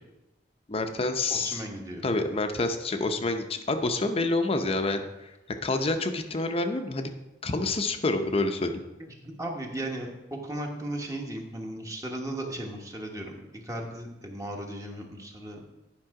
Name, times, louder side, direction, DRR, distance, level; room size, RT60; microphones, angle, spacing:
voice 1, 0.7-1.6 2.0-5.3 5.6-7.1 7.4-8.8, left 2 dB, 35° left, 7 dB, 0.6 m, -28 dB
voice 2, 1.3-2.1 9.0-15.6, right 1 dB, 20° right, 1 dB, 1.1 m, -36 dB
10.5 x 5.4 x 4.8 m, 0.99 s
head